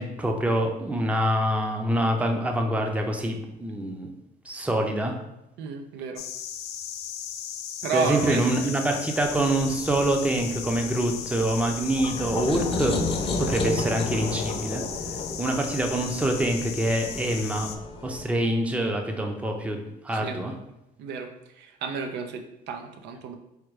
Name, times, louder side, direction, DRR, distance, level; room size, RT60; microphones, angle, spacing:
voice 1, 0.0-4.1 4.4-5.1 7.9-13.0 13.2-14.8 15.4-17.7 18.0-19.8 20.0-20.5, right 1 dB, 10° right, 3 dB, 0.6 m, -25 dB
voice 2, 5.6-6.2 7.8-9.0 20.1-20.4 21.0-23.4, right 5 dB, 85° right, 5 dB, 0.6 m, -32 dB
sound 1, 6.2-17.8, left 9 dB, 75° left, 0.5 m, -37 dB
sound 2, 9.2-18.3, left 3 dB, 35° left, 0.6 m, -33 dB
4.9 x 2.2 x 4.7 m, 0.88 s
cardioid pair, 110°, 17 cm